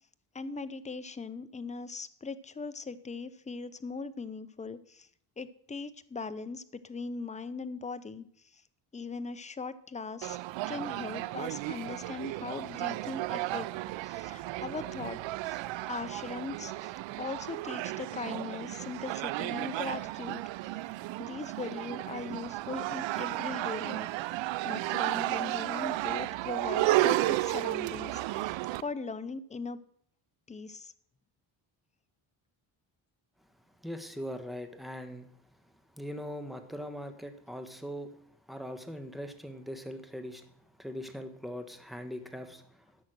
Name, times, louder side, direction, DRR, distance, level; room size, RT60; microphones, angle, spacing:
voice 1, 0.3-5.1 5.4-8.3 8.5-8.6 8.9-10.4 10.7-13.7 14.0-15.6 15.9-20.4 21.2-24.4 24.6-28.5 28.8-29.8 30.5-30.9, left 4 dB, 15° left, 13 dB, 0.6 m, -40 dB
sound 1, 10.2-28.8, right 17 dB, 85° right, 0.5 m, -33 dB
voice 2, 33.8-35.3 35.9-38.1 38.5-40.4 40.8-42.9, equal, ahead, 8 dB, 1.2 m, -41 dB
11.0 x 6.5 x 6.1 m, 0.63 s
cardioid pair, 100°, 44 cm